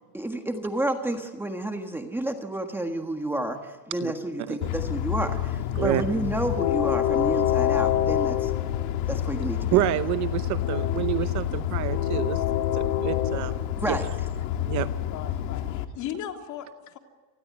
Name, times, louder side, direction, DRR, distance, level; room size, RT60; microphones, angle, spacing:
voice 1, 0.1-8.5 9.1-9.8 13.8-14.1, right 1 dB, 5° right, 5 dB, 1.5 m, -30 dB
Train, 4.6-15.8, left 11 dB, 65° left, 2.2 m, -27 dB
voice 2, 9.7-12.4 13.0-13.5 13.9-14.0 14.7-14.9, right 15 dB, 40° right, 12 dB, 0.8 m, -27 dB
voice 3, 15.1-17.0, left 10 dB, 40° left, 4 dB, 3.1 m, -38 dB
29.0 x 20.0 x 9.6 m, 1.4 s
cardioid pair, 170°, 46 cm